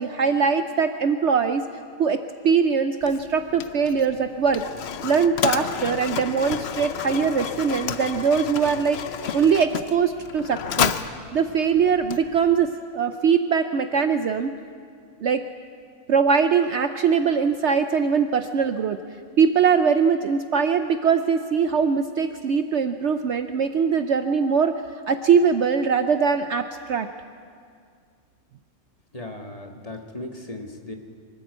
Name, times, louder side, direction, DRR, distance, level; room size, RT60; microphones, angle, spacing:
voice 1, 0.0-1.6 2.0-4.6 5.0-9.0 9.3-10.9 11.3-14.5 15.2-15.4 16.1-19.0 19.4-24.8 25.1-27.1, right 6 dB, 60° right, 9 dB, 0.9 m, -21 dB
Mechanisms, 3.0-12.7, left 8 dB, 55° left, 0.8 m, -31 dB
voice 2, 29.1-30.9, left 2 dB, 25° left, 3 dB, 1.7 m, -37 dB
24.0 x 13.5 x 8.1 m, 2.2 s
omnidirectional pair, 1.5 m